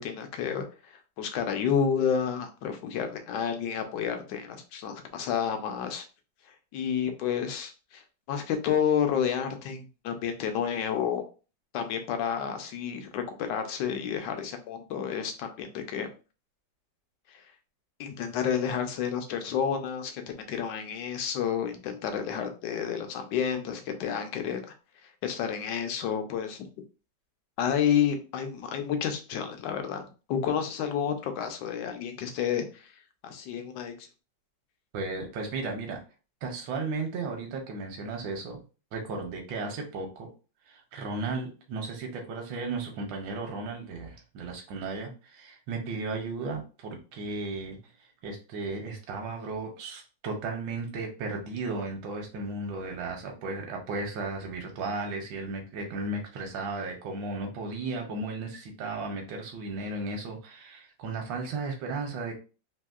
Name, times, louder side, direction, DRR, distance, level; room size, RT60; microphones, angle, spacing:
voice 1, 0.0-6.0 6.7-8.0 8.3-11.2 11.7-16.1 18.0-20.2 20.5-24.6 25.2-26.7 27.6-32.9 33.2-34.1, left 8 dB, 75° left, 6 dB, 1.2 m, -30 dB
voice 2, 34.9-36.0 36.4-38.6 38.9-40.3 40.7-47.8 48.2-62.3, right 3 dB, 85° right, 2 dB, 1.3 m, -35 dB
3.4 x 2.7 x 2.3 m, 0.34 s
omnidirectional pair, 2.0 m